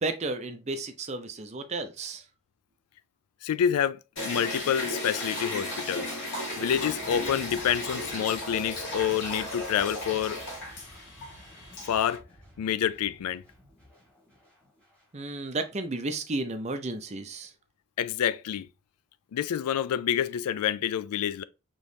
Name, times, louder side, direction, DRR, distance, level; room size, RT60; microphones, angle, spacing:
voice 1, 0.0-2.2 15.1-17.5, right 2 dB, 30° right, 0.5 m, -33 dB
voice 2, 3.4-6.1 6.6-10.4 11.9-12.2 12.6-13.4 18.0-18.7 19.3-21.4, left 9 dB, 85° left, 0.3 m, -28 dB
sound 1, 4.2-12.2, left 1 dB, 55° left, 1.9 m, -35 dB
sound 2, 5.2-15.0 15.3-15.5, left 1 dB, 5° left, 1.4 m, -49 dB
5.0 x 3.0 x 2.7 m
head